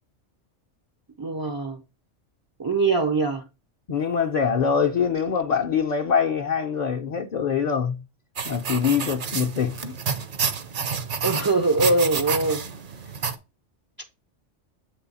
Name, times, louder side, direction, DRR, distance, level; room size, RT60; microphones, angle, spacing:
voice 1, 1.2-1.8 2.6-3.4 11.2-12.6, right 3 dB, 35° right, 0.3 m, -22 dB
voice 2, 3.9-8.0 8.5-9.9, left 6 dB, 50° left, 0.5 m, -24 dB
sound 1, 8.4-13.4, right 6 dB, 50° right, 0.7 m, -29 dB
8.0 x 3.1 x 4.0 m
omnidirectional pair, 1.2 m